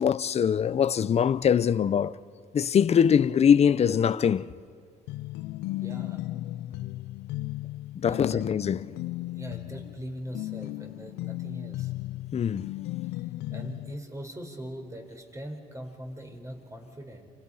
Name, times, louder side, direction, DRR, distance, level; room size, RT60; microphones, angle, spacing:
voice 1, 0.0-2.2 2.5-4.5 7.9-8.9 12.3-12.7, left 8 dB, 40° left, 0.8 m, -23 dB
sound 1, 5.1-14.0, left 17 dB, 85° left, 0.6 m, -36 dB
voice 2, 5.8-6.2 8.1-8.4 9.3-11.9 13.5-17.3, equal, 20° right, 4.4 m, -41 dB
30.0 x 29.0 x 5.7 m
cardioid pair, 110°, 17 cm